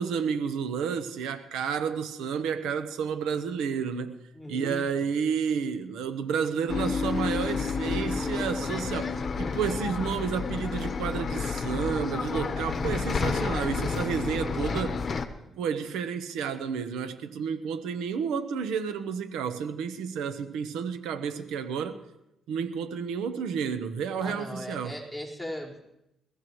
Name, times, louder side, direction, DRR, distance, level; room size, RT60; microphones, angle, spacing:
voice 1, 0.0-4.2 4.5-15.0 15.6-22.0 22.5-25.0, right 6 dB, 90° right, 10 dB, 1.0 m, -31 dB
voice 2, 4.3-4.9 14.5-15.5 24.2-25.8, equal, 5° right, -4 dB, 4.6 m, -39 dB
Bus, 6.7-15.3, left 5 dB, 45° left, 1.1 m, -30 dB
21.5 x 15.5 x 3.2 m, 0.87 s
cardioid pair, 90°, 0 cm